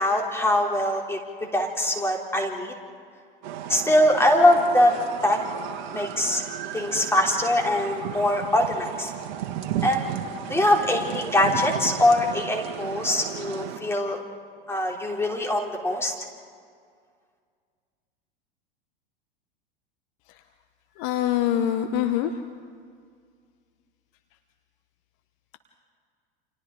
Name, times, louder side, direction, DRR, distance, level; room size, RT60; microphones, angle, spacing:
voice 1, 0.0-2.7 3.7-5.0 5.2-5.4 5.9-6.4 6.7-9.1 9.8-10.1 10.5-14.2 14.7-16.1, left 1 dB, 10° left, 0 dB, 3.4 m, -22 dB
sound 1, 3.4-13.8, right 10 dB, 50° right, 1.7 m, -34 dB
voice 2, 20.9-22.4, left 10 dB, 45° left, 8 dB, 1.1 m, -25 dB
29.5 x 28.0 x 3.9 m, 2.1 s
figure-of-eight pair, 85°, 29 cm